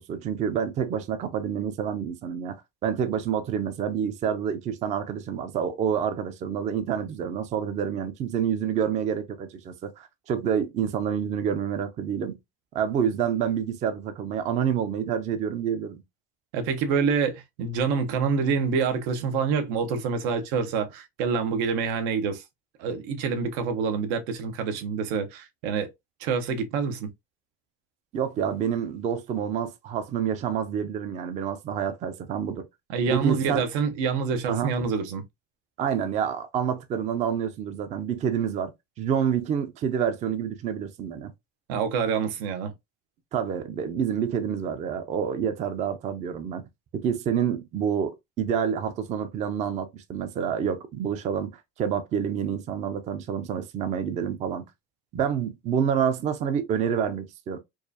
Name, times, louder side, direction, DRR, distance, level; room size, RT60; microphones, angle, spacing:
voice 1, 0.0-12.4 12.7-16.0 28.1-32.7 33.1-33.6 34.5-34.7 35.8-38.7 39.0-41.3 43.3-46.7 46.9-54.7 55.1-57.6, right 8 dB, 25° right, 0.4 m, -28 dB
voice 2, 16.5-22.4 22.8-25.9 26.2-27.1 32.9-35.2 41.7-42.7, right 5 dB, 90° right, 1.0 m, -26 dB
4.6 x 2.5 x 2.7 m
cardioid pair, 170°, 33 cm